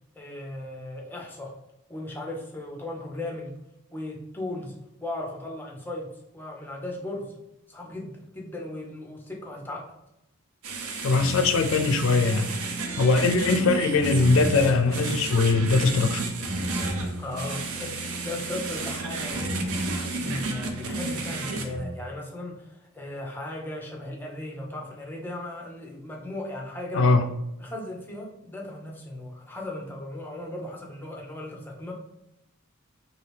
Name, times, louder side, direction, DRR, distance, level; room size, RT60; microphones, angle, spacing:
voice 1, 0.2-1.5 1.9-3.5 3.9-4.7 5.0-7.3 7.7-9.9 13.1-13.2 17.1-19.7 20.2-27.2 27.6-31.9, left 1 dB, 10° left, -1 dB, 0.5 m, -37 dB
sound 1, 10.6-21.6, right 3 dB, 85° right, 0.5 m, -33 dB
voice 2, 11.0-12.5 13.0-16.3 26.9-27.2, left 3 dB, 65° left, 7 dB, 0.4 m, -21 dB
sound 2, 11.2-21.8, right 1 dB, 50° right, 1.2 m, -36 dB
2.8 x 2.6 x 3.3 m, 0.84 s
head